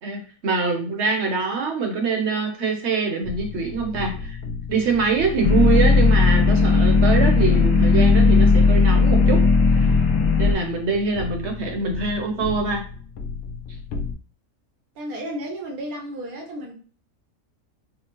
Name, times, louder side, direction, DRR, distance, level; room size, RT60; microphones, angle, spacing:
voice 1, 0.0-4.4 4.7-9.4 9.7-9.9 10.4-12.8, right 4 dB, 55° right, 2 dB, 1.1 m, -24 dB
sound 1, 3.2-14.2, left 4 dB, 75° left, 1.1 m, -34 dB
sound 2, 5.4-10.5, left 4 dB, 55° left, 1.2 m, -16 dB
voice 2, 14.9-16.7, equal, 75° right, 0 dB, 1.4 m, -33 dB
5.1 x 2.0 x 3.0 m, 0.41 s
omnidirectional pair, 1.5 m